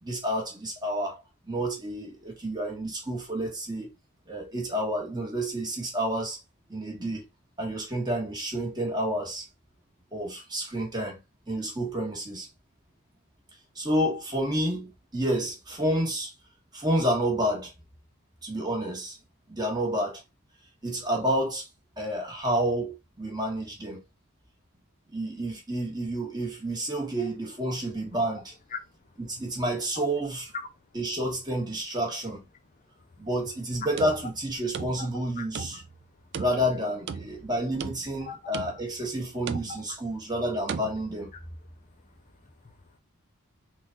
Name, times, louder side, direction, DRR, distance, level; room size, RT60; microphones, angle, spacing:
voice 1, 0.0-3.9 4.3-6.4 6.7-7.3 7.6-9.5 10.1-11.2 11.5-12.5 13.7-16.3 16.7-17.7 18.4-19.2 19.5-20.2 20.8-21.7 22.0-24.0 25.1-28.5 29.2-30.5 30.9-32.5 33.2-35.8 36.4-41.3, right 1 dB, 20° right, 1.2 m, -29 dB
sound 1, 33.8-35.3 35.6-36.0 36.3-37.5 37.8-38.3 38.5-39.0 39.5-40.0 40.7-40.9, right 6 dB, 50° right, 0.3 m, -37 dB
voice 2, 38.2-38.8 39.7-40.0 41.8-43.0, left 6 dB, 35° left, 0.4 m, -44 dB
3.7 x 2.3 x 4.0 m
head